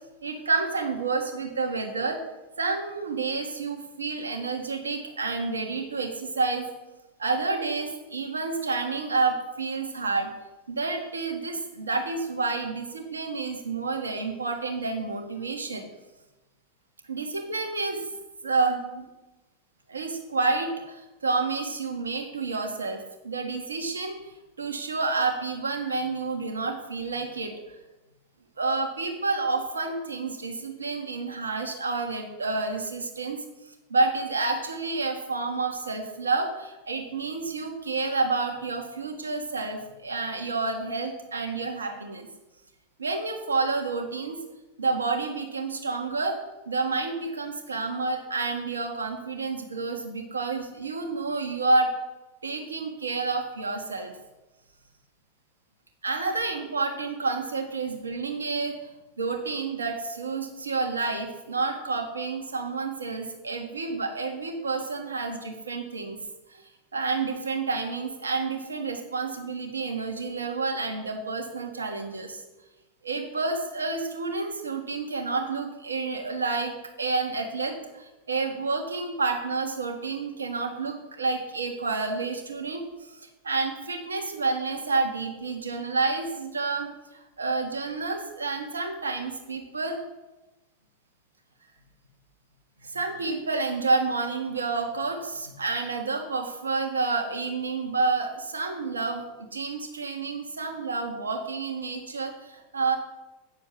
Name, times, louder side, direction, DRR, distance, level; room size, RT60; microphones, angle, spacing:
voice 1, 0.2-2.2 2.6-6.7 7.2-10.3 10.7-15.8 17.1-18.0 18.4-19.1 19.9-24.2 24.6-27.6 28.6-33.4 33.9-42.3 43.0-44.4 44.8-46.4 46.7-51.9 52.4-54.2 56.0-58.8 59.2-66.2 66.5-66.6 66.9-72.4 73.0-76.7 77.0-83.2 83.4-86.9 87.4-90.0 92.8-103.0, right 3 dB, 75° right, 3 dB, 1.7 m, -29 dB
9.2 x 6.9 x 7.8 m, 1.0 s
figure-of-eight pair, 90°, 0 cm